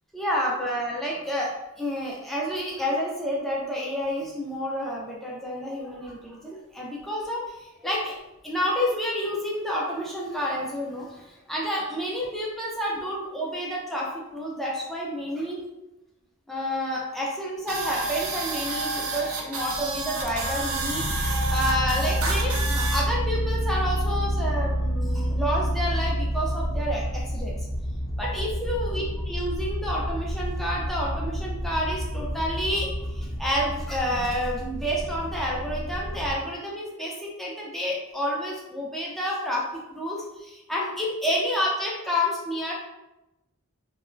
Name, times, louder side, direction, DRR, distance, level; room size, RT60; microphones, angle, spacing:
voice 1, 0.1-8.2 8.4-15.6 16.5-27.6 28.2-42.7, equal, ahead, -4 dB, 0.4 m, -29 dB
sound 1, 17.7-23.0, right 3 dB, 70° right, 0.5 m, -30 dB
sound 2, 20.2-36.3, equal, 60° left, 0.6 m, -29 dB
2.9 x 2.1 x 2.4 m, 0.96 s
head